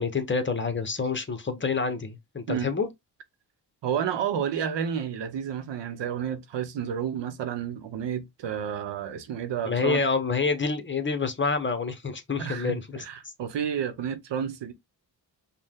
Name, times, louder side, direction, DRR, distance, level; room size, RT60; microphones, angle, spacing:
voice 1, 0.0-2.9 9.7-13.0, left 4 dB, 25° left, 0.9 m, -27 dB
voice 2, 3.8-10.0 12.4-14.7, right 8 dB, 90° right, 0.9 m, -31 dB
5.5 x 2.3 x 3.6 m
cardioid pair, 100°, 41 cm